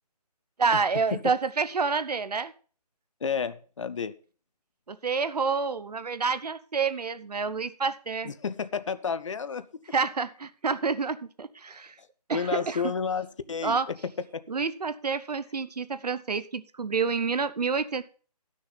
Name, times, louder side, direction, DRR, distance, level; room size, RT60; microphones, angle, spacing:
voice 1, 0.6-2.5 4.9-8.3 9.9-12.0 12.3-12.9 13.6-13.9 14.5-18.0, right 5 dB, 75° right, 13 dB, 0.9 m, -28 dB
voice 2, 3.2-4.1 8.2-9.6 12.3-14.4, left 6 dB, 50° left, 14 dB, 0.7 m, -31 dB
11.5 x 6.4 x 5.4 m, 0.39 s
figure-of-eight pair, 160°, 20 cm